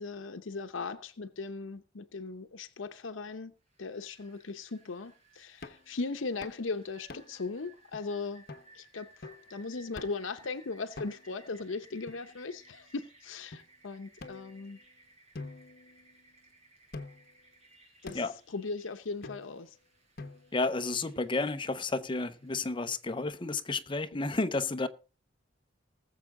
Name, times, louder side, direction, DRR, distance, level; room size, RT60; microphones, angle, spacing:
voice 1, 0.0-3.5 3.8-8.4 8.7-14.8 18.0-19.8, left 4 dB, 85° left, 0.8 m, -38 dB
Rain, 3.6-23.1, right 2 dB, 35° right, 5.6 m, -61 dB
sound 1, 5.6-5.9 6.4-6.6 7.1-7.5 7.9-8.0 8.5-8.7 9.2-9.5 10.0-10.3 11.0-11.4 12.1-12.8 13.5-13.6 14.2-14.9 15.3-16.4 16.9-17.4 18.1-18.4 19.2-19.7 20.2-20.7, left 3 dB, 55° left, 1.1 m, -46 dB
voice 2, 20.5-24.9, left 3 dB, 25° left, 0.8 m, -31 dB
19.5 x 7.3 x 3.7 m
head